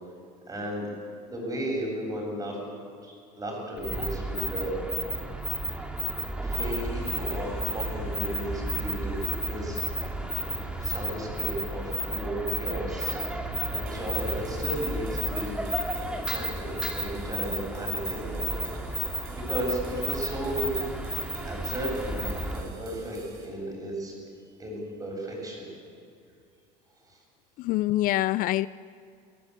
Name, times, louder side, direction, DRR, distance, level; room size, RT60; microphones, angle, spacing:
voice 1, 0.5-0.9 1.3-2.6 3.0-5.2 6.4-10.5 10.8-13.2 13.7-15.6 16.0-18.7 19.1-20.8 21.4-24.2 24.6-25.7 27.1-27.2, right 1 dB, 20° right, 0 dB, 7.9 m, -35 dB
sound 1, 3.8-22.7, right 1 dB, 5° right, 2.3 m, -32 dB
sound 2, 6.5-12.1, left 5 dB, 85° left, 5.9 m, -53 dB
sound 3, 13.9-23.5, right 5 dB, 65° right, 6.3 m, -51 dB
voice 2, 27.6-28.7, left 16 dB, 55° left, 18 dB, 0.4 m, -25 dB
24.0 x 16.0 x 8.4 m, 2.4 s
supercardioid pair, 115°, 17 cm